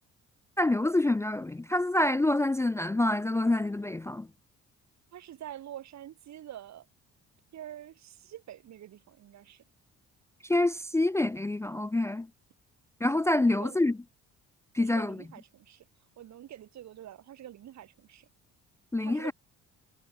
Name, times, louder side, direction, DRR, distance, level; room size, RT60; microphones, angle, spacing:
voice 1, 0.6-4.3 10.4-12.3 13.0-14.0 14.7-15.2 18.9-19.3, left 2 dB, 10° left, 0.4 m, -26 dB
voice 2, 5.1-6.9 7.5-9.6 13.3-13.8 14.8-15.8 16.2-18.3 19.0-19.3, right 11 dB, 65° right, 1.5 m, -46 dB
cardioid pair, 90°, 30 cm